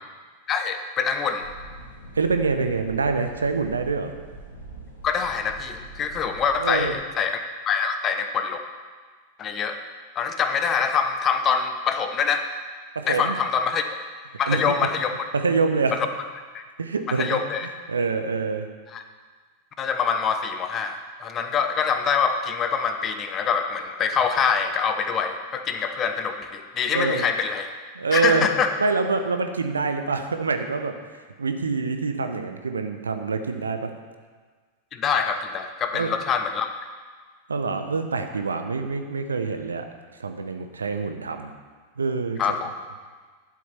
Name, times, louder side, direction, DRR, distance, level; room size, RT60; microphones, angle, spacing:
voice 1, 0.5-1.4 5.0-8.6 9.4-9.8 10.1-12.4 13.1-13.8 14.4-15.1 15.9-16.1 16.5-16.6 17.1-17.7 18.9-19.0 19.8-27.7 28.1-28.7 34.9-36.7 42.4-42.7, left 6 dB, 30° left, 7 dB, 1.0 m, -25 dB
sound 1, 1.4-7.0, right 2 dB, 85° left, 3.0 m, -43 dB
voice 2, 2.1-4.1 6.6-6.9 12.9-13.3 14.5-14.8 15.3-16.0 16.8-17.4 17.9-18.7 26.9-27.3 27.9-28.5 28.8-31.0 31.4-33.9 35.9-36.1 37.5-39.9 40.2-41.5 42.0-42.4, right 4 dB, 75° right, 7 dB, 0.9 m, -25 dB
11.5 x 7.6 x 5.7 m, 1.5 s
figure-of-eight pair, 90°, 0 cm